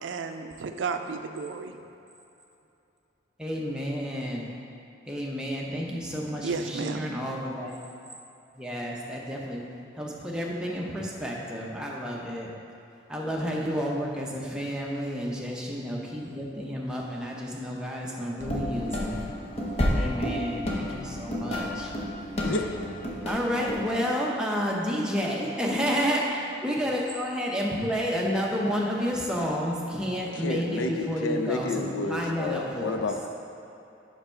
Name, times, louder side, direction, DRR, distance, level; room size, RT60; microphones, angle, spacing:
voice 1, 0.0-1.8 6.4-7.1, right 4 dB, 80° right, 7 dB, 0.4 m, -32 dB
voice 2, 3.4-4.5 5.1-7.8 8.6-9.6 10.0-12.5 13.1-19.2 19.9-21.9 23.3-33.1, equal, 5° right, -3 dB, 0.7 m, -30 dB
sound 1, 18.4-23.8, equal, 35° left, 0.8 m, -30 dB
voice 3, 30.4-33.3, left 3 dB, 85° left, 5 dB, 0.5 m, -30 dB
5.7 x 4.5 x 5.6 m, 2.8 s
head